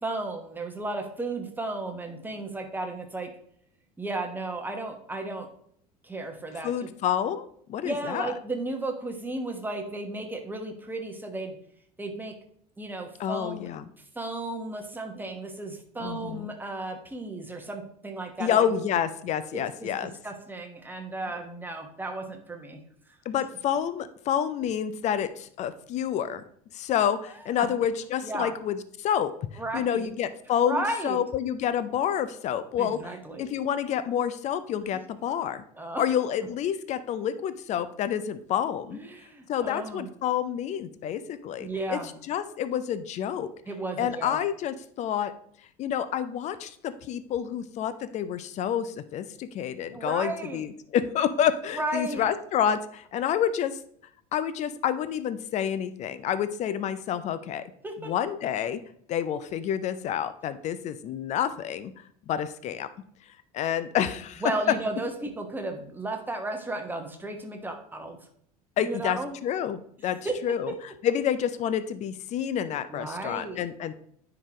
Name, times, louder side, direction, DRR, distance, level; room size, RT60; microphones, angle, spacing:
voice 1, 0.0-3.3 4.0-5.5 6.0-6.9 7.8-11.6 12.0-12.3 12.8-13.7 14.1-18.8 19.5-19.9 20.2-22.8 27.6-27.7 28.2-28.5 29.6-30.1 30.6-31.2 32.8-33.5 35.8-36.0 38.9-40.1 41.6-42.1 43.7-44.4 49.9-50.7 51.7-52.3 57.8-58.1 64.4-68.2 68.8-69.4 70.2-70.3 72.9-73.6, right 2 dB, 10° right, 4 dB, 1.2 m, -34 dB
voice 2, 6.6-8.3 13.2-13.9 16.0-16.5 18.4-20.1 23.3-26.4 26.7-29.5 29.7-33.1 33.4-35.6 36.0-39.0 39.5-42.0 42.3-43.5 44.0-45.3 45.8-53.8 54.3-57.6 58.0-58.8 59.1-61.9 62.3-62.9 63.5-64.4 68.8-70.7 71.0-73.9, left 9 dB, 35° left, 13 dB, 0.5 m, -28 dB
9.9 x 3.9 x 2.9 m, 0.63 s
figure-of-eight pair, 70°, 20 cm